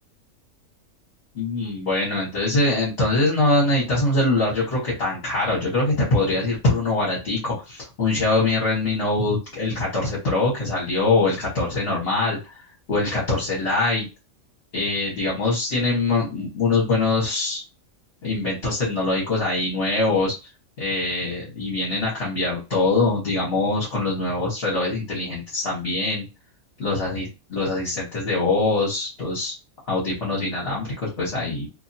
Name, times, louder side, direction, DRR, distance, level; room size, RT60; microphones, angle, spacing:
voice 1, 1.3-12.6 12.9-14.0 14.7-17.6 18.2-20.5 20.8-26.3 26.8-29.5 29.9-31.7, left 2 dB, 50° left, -5 dB, 1.4 m, -23 dB
2.8 x 2.7 x 2.7 m, 0.27 s
omnidirectional pair, 1.5 m